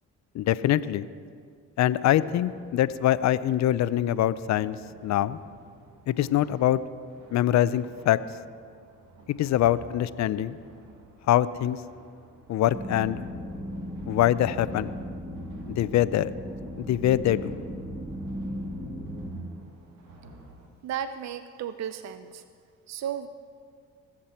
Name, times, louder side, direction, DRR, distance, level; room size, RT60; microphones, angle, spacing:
voice 1, 0.3-1.1 1.8-4.8 5.0-5.4 6.1-6.8 7.3-8.2 9.4-10.6 11.3-11.8 12.5-13.2 14.1-14.9 15.8-16.3 16.8-17.6, left 12 dB, 55° left, 16 dB, 0.5 m, -24 dB
sound 1, 2.0-20.7, right 2 dB, 75° right, 1.9 m, -52 dB
sound 2, 12.7-19.3, equal, 20° right, 2.5 m, -37 dB
voice 2, 20.8-22.4 22.9-23.3, right 9 dB, 55° right, 11 dB, 0.6 m, -34 dB
21.0 x 7.5 x 4.4 m, 2.1 s
supercardioid pair, 65°, 33 cm